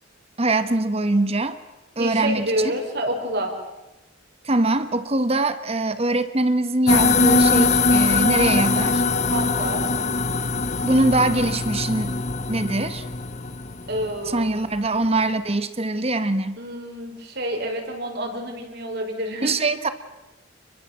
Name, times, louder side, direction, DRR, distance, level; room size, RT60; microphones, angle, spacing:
voice 1, 0.4-1.6 2.0-2.7 4.4-9.0 10.8-12.1 12.5-13.0 14.3-16.6 19.4-19.9, right 2 dB, 30° right, 12 dB, 1.2 m, -23 dB
voice 2, 2.0-3.5 9.2-9.9 13.9-14.6 16.6-19.7, right 1 dB, 55° right, 3 dB, 5.6 m, -28 dB
sound 1, 6.9-14.5, left 3 dB, 35° left, 1.2 m, -21 dB
29.5 x 22.5 x 7.6 m, 1.0 s
head